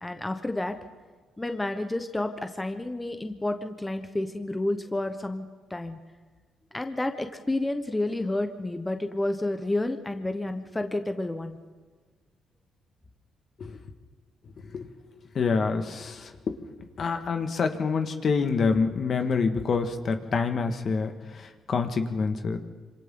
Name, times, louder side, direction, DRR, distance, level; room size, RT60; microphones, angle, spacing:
voice 1, 0.0-0.8 1.4-6.0 6.7-11.6, left 2 dB, 15° left, 7 dB, 1.3 m, -30 dB
voice 2, 15.4-16.5 17.0-22.6, left 5 dB, 50° left, 6 dB, 1.8 m, -27 dB
26.5 x 26.5 x 4.0 m, 1.4 s
cardioid pair, 90°, 0 cm